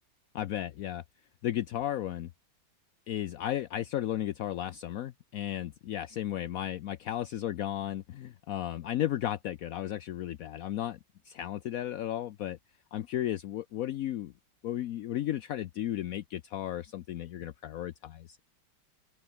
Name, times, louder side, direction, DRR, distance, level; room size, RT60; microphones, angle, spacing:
voice 1, 0.3-1.0 1.4-2.3 3.1-11.0 11.2-12.6 12.9-14.3 14.6-18.4, left 12 dB, 75° left, 0.8 m, -34 dB
open air
omnidirectional pair, 2.1 m